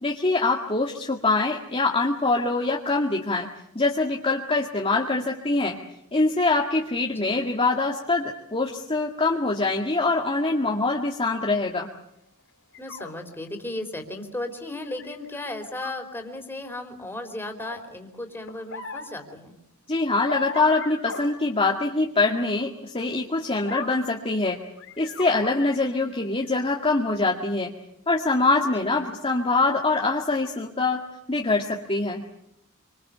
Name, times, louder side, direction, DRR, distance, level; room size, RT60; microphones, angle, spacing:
voice 1, 0.0-3.5 3.8-5.8 6.1-11.9 19.9-24.6 25.0-27.7 28.1-31.0 31.3-32.2, left 3 dB, 25° left, 0 dB, 2.0 m, -24 dB
sound 1, 12.7-13.1 14.9-15.4 15.6-15.9 17.6-17.8 18.5-19.1 20.3-21.2 23.7-24.0 24.8-25.9 26.4-26.5, left 4 dB, 60° left, 5.1 m, -36 dB
voice 2, 12.8-19.6 28.9-29.1, left 1 dB, 10° left, 4 dB, 3.7 m, -35 dB
27.0 x 25.5 x 6.9 m, 0.75 s
head